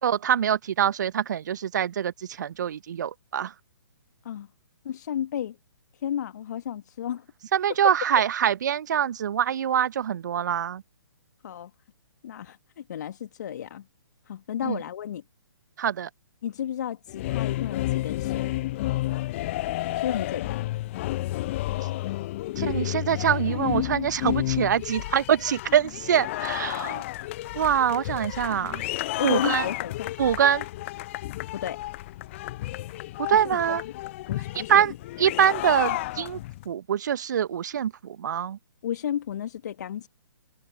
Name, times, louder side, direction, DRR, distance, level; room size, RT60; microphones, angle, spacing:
voice 1, 0.0-3.5 7.5-10.8 14.6-14.8 15.8-16.1 22.6-27.0 27.5-28.8 29.2-29.7 30.2-30.7 33.2-33.8 34.7-34.9 35.2-36.4 36.6-38.6, right 9 dB, 55° right, 1.1 m, -24 dB
voice 2, 4.8-5.6 5.9-7.3 11.4-11.7 12.2-13.9 14.3-15.2 16.4-18.6 20.0-20.7 29.2-30.1 31.5-31.8 33.3-33.8 34.3-34.8 38.8-40.1, left 10 dB, 50° left, 1.6 m, -33 dB
sound 1, 17.1-36.6, left 16 dB, 35° left, 0.6 m, -31 dB
figure-of-eight pair, 130°, 12 cm